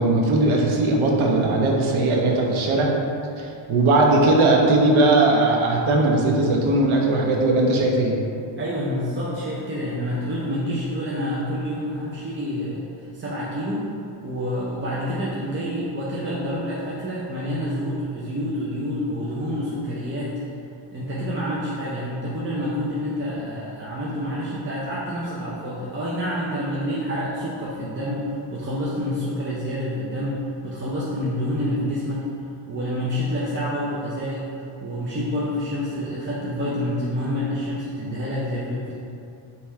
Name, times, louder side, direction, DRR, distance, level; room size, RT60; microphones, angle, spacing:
voice 1, 0.0-3.0 3.4-8.2, right 2 dB, 75° right, 0 dB, 0.8 m, -19 dB
voice 2, 8.6-13.9 14.2-20.3 20.9-32.3 32.7-38.9, equal, 25° right, -7 dB, 0.5 m, -28 dB
3.5 x 3.1 x 4.3 m, 2.5 s
wide cardioid pair, 135°, 49 cm